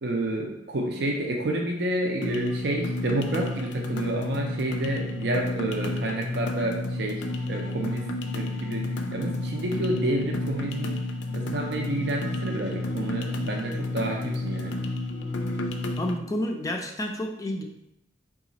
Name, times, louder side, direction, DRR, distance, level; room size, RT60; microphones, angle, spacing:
voice 1, 0.0-8.1 8.3-11.0 11.3-14.8, right 1 dB, 70° right, 1 dB, 0.5 m, -29 dB
sound 1, 2.2-16.2, left 2 dB, 90° left, 0.4 m, -31 dB
voice 2, 16.0-17.6, left 1 dB, 20° left, 2 dB, 0.4 m, -30 dB
3.9 x 2.4 x 3.9 m, 0.85 s
head